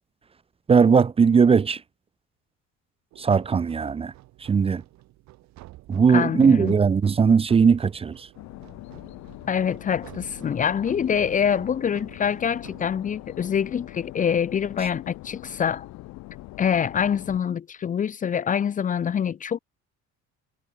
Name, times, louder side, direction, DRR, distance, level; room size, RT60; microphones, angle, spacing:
voice 1, 0.7-1.8 3.2-4.1 4.4-4.8 5.9-8.3, right 6 dB, 20° right, 0.9 m, -19 dB
sound 1, 3.1-12.9, right 18 dB, 70° right, 4.4 m, -49 dB
voice 2, 6.1-6.7 9.5-15.9 16.6-19.6, left 8 dB, 25° left, 0.9 m, -25 dB
sound 2, 8.3-17.4, left 19 dB, 70° left, 2.4 m, -42 dB
cardioid pair, 160°, 29 cm